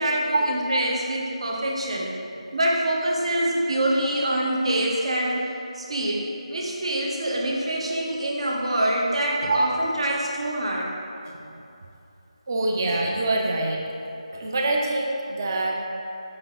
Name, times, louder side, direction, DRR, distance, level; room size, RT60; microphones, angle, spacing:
voice 1, 0.0-2.1 2.5-10.9, right 1 dB, 55° right, -2 dB, 1.3 m, -25 dB
voice 2, 12.5-13.8 14.3-15.9, right 2 dB, 30° right, 0 dB, 0.8 m, -25 dB
7.8 x 5.6 x 4.0 m, 2.8 s
figure-of-eight pair, 170°, 4 cm